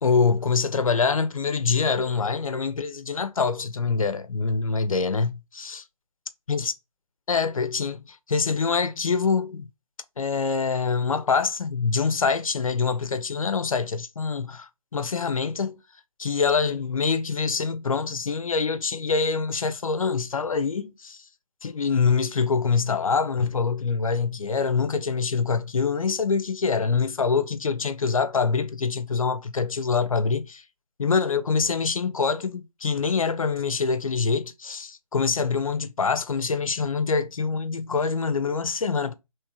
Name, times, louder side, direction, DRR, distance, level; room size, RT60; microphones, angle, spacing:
voice 1, 0.0-5.8 6.5-6.7 7.3-9.7 10.2-15.8 16.2-21.2 21.6-30.6 31.0-39.1, left 5 dB, 70° left, 0.7 m, -25 dB
3.5 x 3.2 x 4.4 m
figure-of-eight pair, 150°, 18 cm